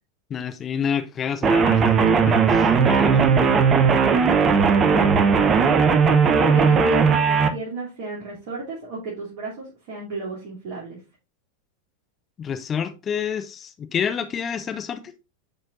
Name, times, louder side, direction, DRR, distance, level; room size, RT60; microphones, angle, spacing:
voice 1, 0.3-1.8 2.2-3.2 12.4-15.1, left 7 dB, 25° left, 0.5 m, -28 dB
sound 1, 1.4-7.5, right 5 dB, 25° right, 0.8 m, -17 dB
voice 2, 2.8-3.4 4.5-5.5 6.3-11.0, right 2 dB, 50° right, 2.7 m, -34 dB
10.5 x 4.3 x 2.5 m
figure-of-eight pair, 90°, 0 cm